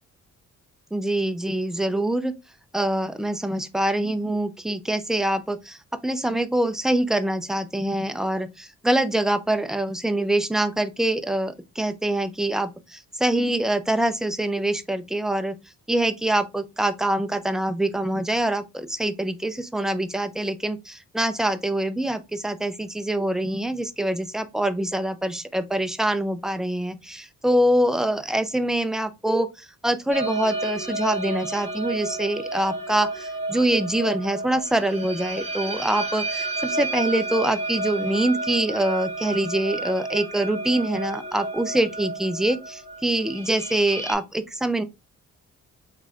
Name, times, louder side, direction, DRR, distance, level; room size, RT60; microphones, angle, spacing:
voice 1, 0.9-2.3 2.7-5.8 6.0-15.6 15.9-44.8, right 1 dB, ahead, 0.3 m, -25 dB
sound 1, 30.1-44.1, right 2 dB, 20° right, 1.7 m, -31 dB
3.8 x 3.1 x 2.3 m
cardioid pair, 90°, 30 cm